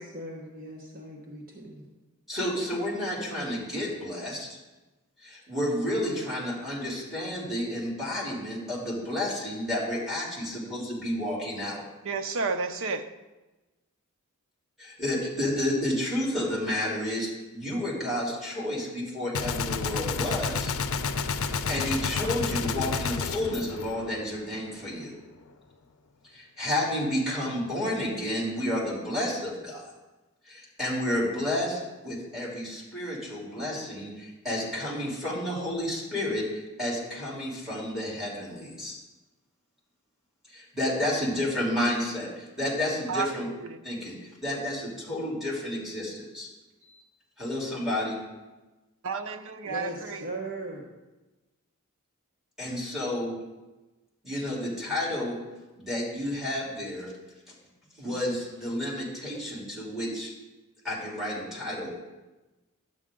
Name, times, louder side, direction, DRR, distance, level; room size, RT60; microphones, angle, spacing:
voice 1, 0.0-1.8 49.6-50.8, right 1 dB, 40° right, -1 dB, 1.2 m, -38 dB
voice 2, 2.3-4.6 5.2-11.8 14.8-20.7 21.4-25.1 26.3-29.8 30.5-38.9 40.5-43.5 43.8-46.5 46.8-47.0 47.4-48.2 52.6-53.3 54.2-55.3 55.8-57.1 58.0-60.3 60.8-61.9, left 1 dB, ahead, -5 dB, 3.2 m, -31 dB
voice 3, 12.0-13.0 43.1-43.8 49.0-50.3, right 4 dB, 65° right, 8 dB, 0.7 m, -31 dB
Gunshot gunfire, 19.3-24.6, left 5 dB, 65° left, 0.6 m, -30 dB
12.0 x 8.0 x 3.7 m, 1.1 s
head